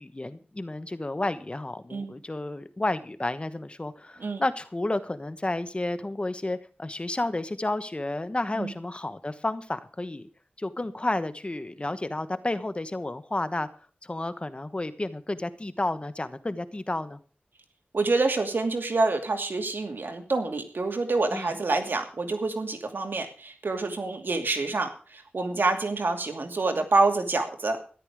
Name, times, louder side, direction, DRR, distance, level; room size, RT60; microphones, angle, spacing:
voice 1, 0.0-10.3 10.6-13.7 14.0-17.2 21.3-21.5, left 2 dB, 30° left, 12 dB, 1.1 m, -31 dB
voice 2, 17.9-27.8, right 3 dB, 75° right, 5 dB, 2.6 m, -27 dB
13.5 x 11.5 x 4.9 m, 0.40 s
wide cardioid pair, 60°, 4 cm